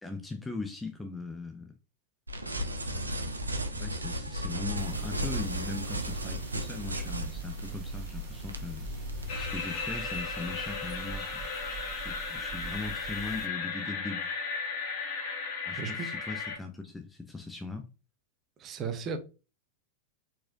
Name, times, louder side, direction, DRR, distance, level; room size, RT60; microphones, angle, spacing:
voice 1, 0.0-1.7 2.8-3.2 3.8-9.0 9.3-11.4 12.0-14.3 15.7-17.9, left 3 dB, 10° left, 0.6 m, -40 dB
sound 1, 2.3-9.5, equal, 80° right, 0.7 m, -35 dB
sound 2, 4.7-13.5, right 7 dB, 15° right, 1.8 m, -44 dB
sound 3, 9.3-16.6, left 5 dB, 50° left, 1.4 m, -35 dB
voice 2, 15.8-16.1 18.6-19.2, right 5 dB, 30° right, 0.8 m, -35 dB
4.4 x 4.3 x 2.6 m
figure-of-eight pair, 90°, 0 cm